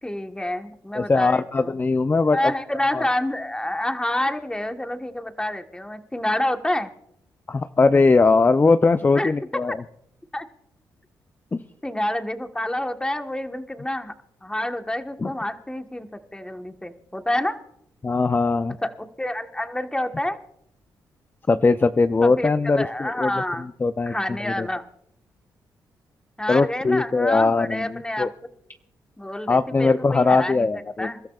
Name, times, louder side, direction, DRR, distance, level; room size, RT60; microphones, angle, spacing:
voice 1, 0.0-1.8 2.3-6.9 9.1-9.6 10.3-10.5 11.8-14.1 14.4-17.6 18.8-20.4 22.2-23.7 24.1-24.8 26.4-28.3 29.2-31.2, left 1 dB, 10° left, 6 dB, 1.3 m, -28 dB
voice 2, 0.9-2.5 2.9-3.0 7.5-9.8 11.5-11.6 15.2-15.3 18.0-18.8 21.5-23.3 23.8-24.1 24.4-24.7 26.5-28.3 29.5-31.1, left 3 dB, 25° left, 10 dB, 0.5 m, -20 dB
28.0 x 13.0 x 2.4 m, 0.75 s
cardioid pair, 65°, 8 cm